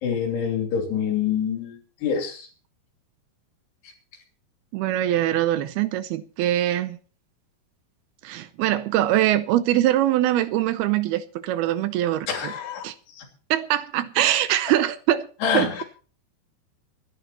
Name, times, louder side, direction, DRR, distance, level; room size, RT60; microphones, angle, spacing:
voice 1, 0.0-2.5 3.8-3.9 12.3-13.2 15.4-15.8, left 7 dB, 80° left, 5.1 m, -26 dB
voice 2, 4.7-7.0 8.2-12.5 12.8-12.9 13.5-15.3 15.5-15.8, right 13 dB, 80° right, 2.5 m, -23 dB
25.0 x 11.5 x 3.0 m
omnidirectional pair, 4.7 m